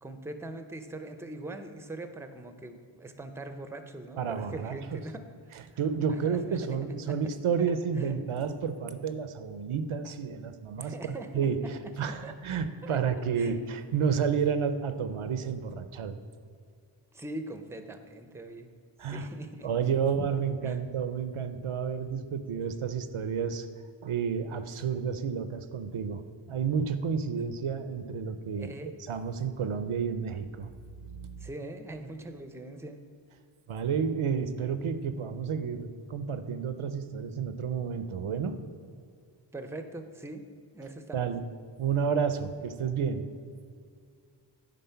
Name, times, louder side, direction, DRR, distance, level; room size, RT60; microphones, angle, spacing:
voice 1, 0.0-5.6 6.1-7.2 7.6-8.2 10.8-11.7 12.2-12.3 12.8-13.7 17.1-18.7 19.0-19.9 20.6-20.8 28.5-28.9 31.4-33.0 39.5-40.4 40.7-41.3, right 2 dB, 5° right, 8 dB, 0.6 m, -42 dB
voice 2, 4.2-5.0 5.8-16.2 19.0-19.3 19.6-23.7 24.0-26.2 26.5-28.7 29.1-30.7 31.1-31.5 33.7-38.6 41.1-41.4 41.8-43.3, right 6 dB, 75° right, 10 dB, 0.6 m, -31 dB
9.3 x 3.8 x 5.7 m, 2.3 s
wide cardioid pair, 55°, 50 cm